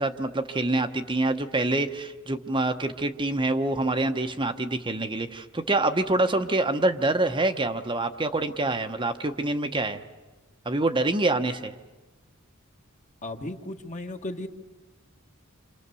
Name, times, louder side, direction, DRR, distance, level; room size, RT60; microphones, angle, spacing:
voice 1, 0.0-10.0 10.6-11.7, right 2 dB, 25° right, 6 dB, 0.9 m, -26 dB
voice 2, 13.2-14.5, left 1 dB, 35° left, 5 dB, 1.5 m, -35 dB
29.0 x 26.5 x 6.9 m, 1.2 s
head